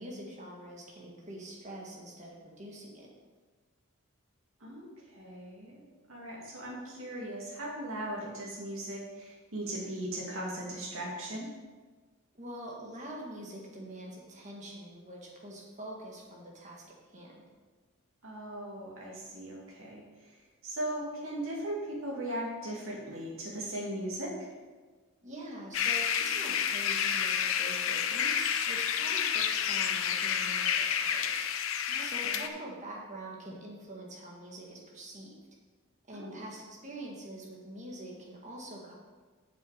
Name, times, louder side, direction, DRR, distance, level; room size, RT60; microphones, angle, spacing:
voice 1, 0.0-3.1 12.4-16.8 17.1-17.5 25.2-31.5 32.0-35.3 36.1-38.9, right 1 dB, 35° right, -2 dB, 1.7 m, -45 dB
voice 2, 4.6-5.8 6.1-11.5 18.2-20.0 20.6-24.5 31.9-32.4 36.1-36.4, right 1 dB, 70° right, -3 dB, 2.3 m, -38 dB
sound 1, 25.7-32.5, left 8 dB, 65° left, 0.6 m, -30 dB
8.3 x 6.9 x 5.0 m, 1.4 s
head